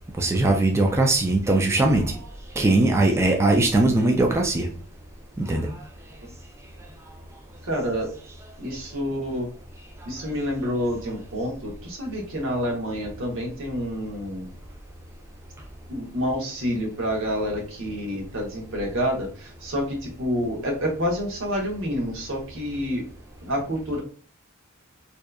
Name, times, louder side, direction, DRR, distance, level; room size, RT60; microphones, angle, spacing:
voice 1, 0.2-2.0 2.6-4.7 5.4-5.7, right 2 dB, 15° right, 1 dB, 0.3 m, -20 dB
voice 2, 7.6-8.1 8.6-9.5 10.0-14.5 15.9-23.0 23.4-24.0, equal, 65° right, 0 dB, 0.9 m, -28 dB
2.7 x 2.2 x 2.3 m, 0.41 s
head